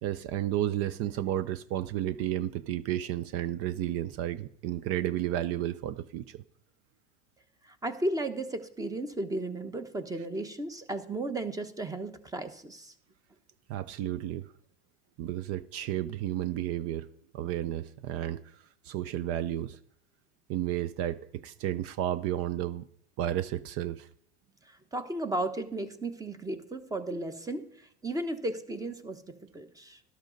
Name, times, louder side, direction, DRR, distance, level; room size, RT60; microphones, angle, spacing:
voice 1, 0.0-6.4 13.7-14.5 15.2-17.1 17.3-19.8 20.5-22.8 23.2-24.1, right 12 dB, 45° right, 0.6 m, -32 dB
voice 2, 7.8-12.9 24.9-27.6 28.0-29.2 29.5-30.0, right 2 dB, 10° right, 0.9 m, -34 dB
12.5 x 12.0 x 3.9 m
supercardioid pair, 130°, 33 cm